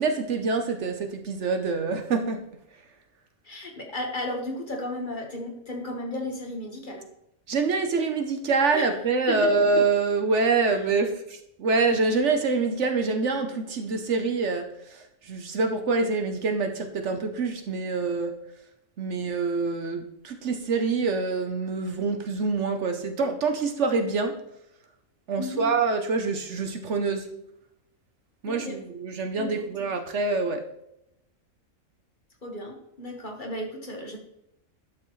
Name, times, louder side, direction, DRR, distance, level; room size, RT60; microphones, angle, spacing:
voice 1, 0.0-2.4 7.5-18.3 19.0-24.4 25.3-27.3 28.4-30.7, right 4 dB, 60° right, 6 dB, 1.1 m, -26 dB
voice 2, 3.4-7.1 8.7-8.9 9.3-9.5 25.4-25.7 28.4-28.8 29.4-29.9 32.4-34.2, left 1 dB, 35° left, 2 dB, 1.5 m, -34 dB
11.0 x 6.3 x 3.1 m, 0.82 s
omnidirectional pair, 1.4 m